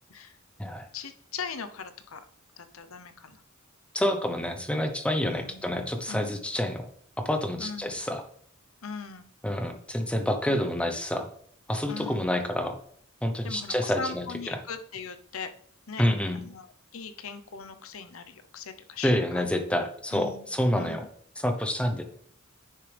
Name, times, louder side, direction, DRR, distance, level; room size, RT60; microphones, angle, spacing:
voice 1, 0.9-2.2 2.6-3.4 5.3-5.6 6.1-6.4 7.6-7.9 8.8-9.3 10.5-10.6 11.9-12.3 13.4-15.5 15.9-16.0 16.3-16.7 16.9-19.4 20.1-20.5 20.8-21.1, left 5 dB, 85° left, 9 dB, 0.8 m, -39 dB
voice 2, 3.9-6.9 7.2-8.2 9.4-11.3 11.7-12.8 13.2-14.6 16.0-16.4 19.0-21.0 21.4-22.0, left 1 dB, 5° left, 6 dB, 0.9 m, -28 dB
9.8 x 6.7 x 3.4 m, 0.62 s
head